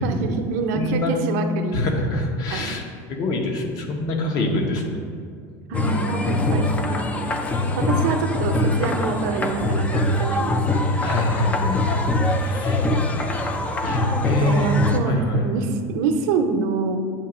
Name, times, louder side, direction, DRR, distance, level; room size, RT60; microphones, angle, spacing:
voice 1, 0.0-1.8 2.5-2.7 5.7-7.3 7.8-11.0 14.0-17.0, right 5 dB, 70° right, 5 dB, 0.7 m, -26 dB
voice 2, 0.7-1.1 1.7-2.8 3.1-4.8 11.0-11.8 12.3-12.8 13.5-15.5, left 1 dB, 45° left, 2 dB, 1.0 m, -24 dB
sound 1, 5.7-15.0, left 2 dB, 15° left, 0.4 m, -23 dB
8.5 x 2.9 x 6.1 m, 2.3 s
supercardioid pair, 150°, 9 cm